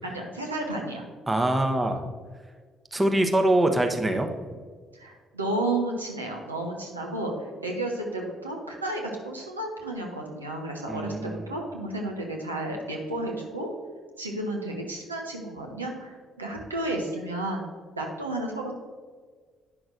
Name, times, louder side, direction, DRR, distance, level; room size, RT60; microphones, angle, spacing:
voice 1, 0.0-1.1 4.9-13.7 14.2-17.6 17.9-18.7, right 1 dB, 90° right, 0 dB, 0.7 m, -32 dB
voice 2, 1.3-2.1 2.9-4.3 10.9-11.4, right 1 dB, 20° right, 5 dB, 0.9 m, -24 dB
9.6 x 6.0 x 2.6 m, 1.6 s
figure-of-eight pair, 45°, 0 cm